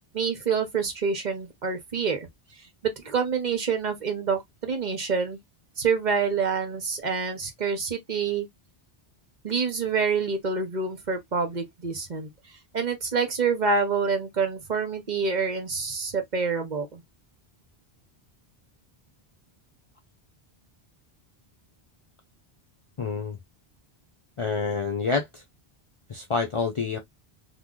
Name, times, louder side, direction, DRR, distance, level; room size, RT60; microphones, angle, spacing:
voice 1, 0.1-2.2 2.6-5.4 5.8-8.5 9.4-12.3 12.7-17.0, right 5 dB, 50° right, 0.9 m, -27 dB
voice 2, 23.0-23.4 24.4-25.4 26.1-27.0, left 4 dB, 45° left, 0.4 m, -27 dB
2.9 x 2.1 x 3.6 m
omnidirectional pair, 1.0 m